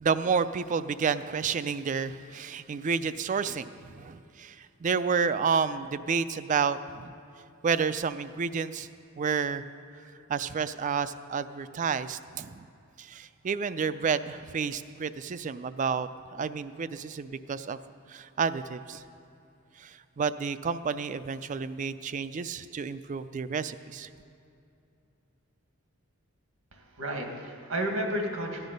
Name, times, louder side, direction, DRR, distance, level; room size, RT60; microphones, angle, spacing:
voice 1, 0.0-7.1 7.6-8.9 9.2-9.7 10.3-12.7 13.0-17.8 18.1-19.0 19.8-24.1, right 5 dB, 35° right, 13 dB, 0.3 m, -30 dB
voice 2, 26.7-28.7, right 1 dB, 85° right, 2 dB, 1.7 m, -32 dB
14.5 x 10.0 x 5.3 m, 2.6 s
head